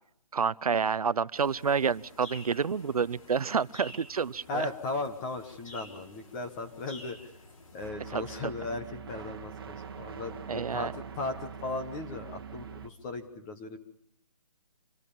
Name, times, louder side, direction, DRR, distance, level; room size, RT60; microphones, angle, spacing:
voice 1, 0.3-4.7 8.1-8.5 10.5-10.9, right 6 dB, 70° right, 19 dB, 0.8 m, -29 dB
sound 1, 1.4-7.9, left 2 dB, 60° left, 7.0 m, -51 dB
voice 2, 4.5-7.3 7.7-10.9 11.2-13.8, left 3 dB, 10° left, 6 dB, 1.3 m, -37 dB
sound 2, 7.8-12.9, right 7 dB, 40° right, 1.6 m, -43 dB
27.0 x 20.0 x 7.0 m, 0.71 s
hypercardioid pair, 175°, 19 cm